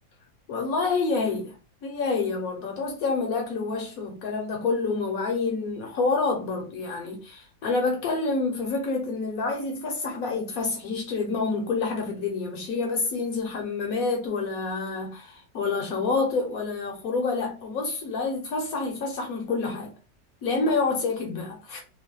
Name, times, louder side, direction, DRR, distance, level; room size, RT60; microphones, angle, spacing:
voice 1, 0.5-1.5 1.8-19.9 20.4-21.8, left 4 dB, 65° left, 0.9 m, -28 dB
3.0 x 2.1 x 2.8 m
omnidirectional pair, 2.0 m